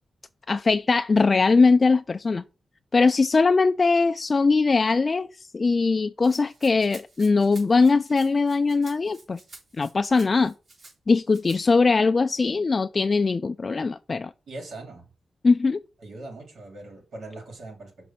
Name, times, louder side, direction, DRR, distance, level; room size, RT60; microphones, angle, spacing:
voice 1, 0.5-2.4 2.9-9.4 9.8-10.5 11.1-14.3 15.4-15.8, left 4 dB, 40° left, 0.3 m, -21 dB
Rattle (instrument), 6.2-10.9 11.3-11.6, right 2 dB, 55° right, 4.1 m, -50 dB
voice 2, 14.5-15.1 16.0-18.1, right 2 dB, 75° right, 3.1 m, -41 dB
6.2 x 3.4 x 5.8 m
cardioid pair, 70°, 0 cm